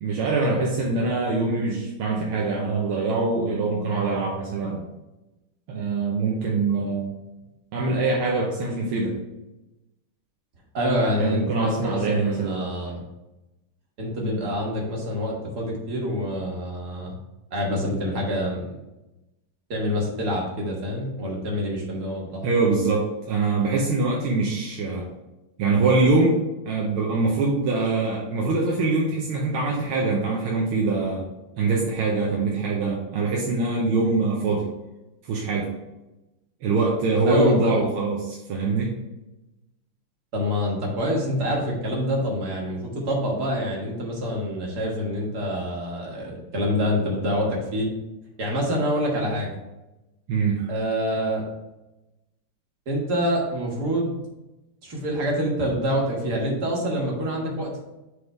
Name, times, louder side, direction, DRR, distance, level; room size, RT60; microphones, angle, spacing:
voice 1, 0.0-4.9 5.7-7.1 7.7-9.1 11.2-12.6 22.4-25.1 25.6-31.3 31.6-34.7 35.3-35.7 36.6-38.9 50.3-50.7, right 3 dB, 80° right, -2 dB, 1.8 m, -23 dB
voice 2, 10.7-13.0 14.0-17.1 17.5-18.8 19.7-22.4 37.3-37.8 40.3-47.9 48.4-49.5 50.7-51.5 52.9-54.1 54.8-57.8, equal, 50° right, -1 dB, 1.9 m, -26 dB
6.7 x 3.6 x 4.6 m, 0.99 s
omnidirectional pair, 2.3 m